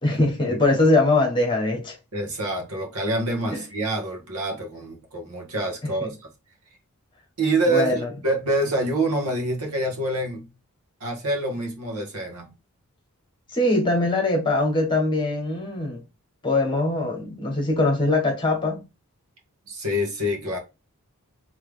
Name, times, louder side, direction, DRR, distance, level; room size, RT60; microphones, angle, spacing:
voice 1, 0.0-1.9 3.5-3.6 5.8-6.1 7.7-8.1 13.5-16.0 16.4-18.8, left 2 dB, 20° left, 1.5 m, -22 dB
voice 2, 2.1-6.2 7.4-10.5 11.0-12.5 19.7-20.6, right 1 dB, 80° right, 1.7 m, -26 dB
3.6 x 3.5 x 3.3 m
head